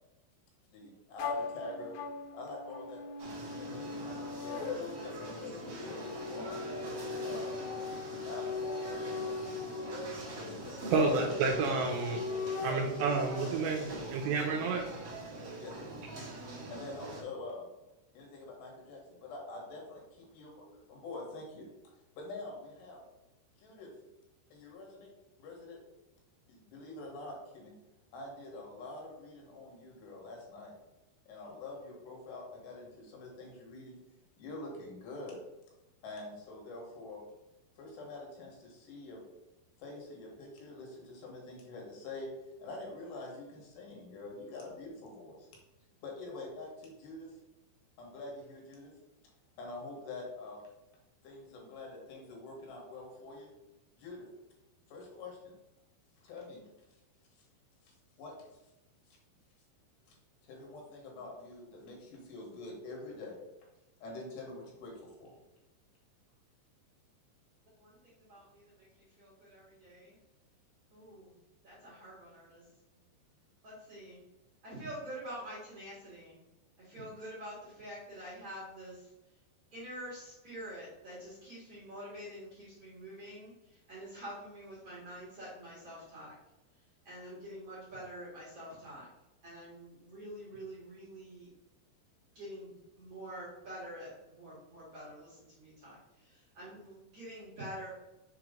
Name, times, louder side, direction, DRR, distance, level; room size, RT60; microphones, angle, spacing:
voice 1, 1.1-1.9 2.3-3.0 3.6-6.6 7.2-7.7 8.2-9.4 10.3-10.8 11.1-11.2 15.6-16.3 16.7-17.7 18.1-21.7 22.2-23.0 23.6-23.9 24.5-25.1 25.4-25.8 26.5-27.7 28.1-30.8 31.3-34.0 34.4-35.4 36.0-37.2 37.8-39.2 39.8-42.3 42.6-45.5 46.0-47.4 48.0-48.9 49.6-50.6 51.2-53.5 53.9-54.3 54.9-55.6 56.2-56.6 58.2-58.5 60.4-63.4 64.0-65.3, left 2 dB, 70° left, -1 dB, 3.3 m, -46 dB
sound 1, 1.2-13.5, left 4 dB, 90° left, 3.1 m, -39 dB
sound 2, 3.2-17.2, right 1 dB, 65° right, 1.4 m, -44 dB
voice 2, 10.9-12.2 12.6-14.9, right 4 dB, 80° right, 1 dB, 2.6 m, -30 dB
voice 3, 67.8-70.1 70.9-71.3 71.6-72.7 73.6-74.2 74.6-76.4 76.8-79.1 79.7-86.3 87.0-89.1 89.4-91.5 92.3-97.9, equal, 50° right, -9 dB, 2.0 m, -47 dB
6.8 x 3.0 x 5.0 m, 0.98 s
omnidirectional pair, 5.4 m